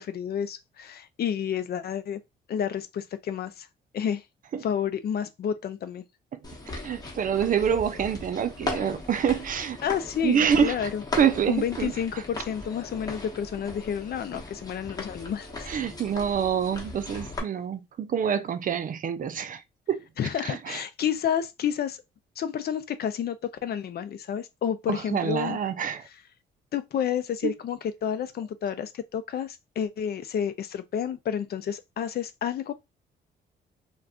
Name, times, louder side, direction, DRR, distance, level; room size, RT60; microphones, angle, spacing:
voice 1, 0.0-2.2 2.5-3.7 3.9-4.2 4.6-6.0 9.8-11.0 11.5-15.7 20.2-22.0 22.4-25.6 26.7-32.7, left 8 dB, 55° left, 0.5 m, -30 dB
sound 1, 6.4-17.4, left 2 dB, 20° left, 1.1 m, -38 dB
voice 2, 6.8-9.8 10.2-10.9 11.2-11.9 15.7-19.6 19.9-20.0 20.4-20.8 24.9-26.0 27.4-27.5, right 8 dB, 45° right, 0.4 m, -26 dB
2.5 x 2.2 x 3.6 m
cardioid pair, 90°, 20 cm